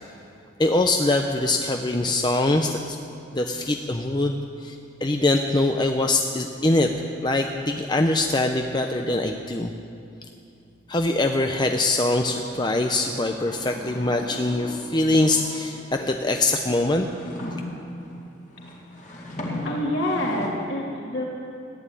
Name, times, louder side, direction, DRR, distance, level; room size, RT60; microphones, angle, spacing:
voice 1, 0.6-3.0 3.3-9.7 10.9-17.1, left 2 dB, 20° left, 4 dB, 0.6 m, -23 dB
sound 1, 11.7-16.0 16.6-20.5, left 1 dB, 40° left, 2.2 m, -37 dB
voice 2, 19.6-21.2, left 1 dB, 60° left, -3 dB, 3.3 m, -26 dB
15.0 x 10.5 x 9.0 m, 2.7 s
head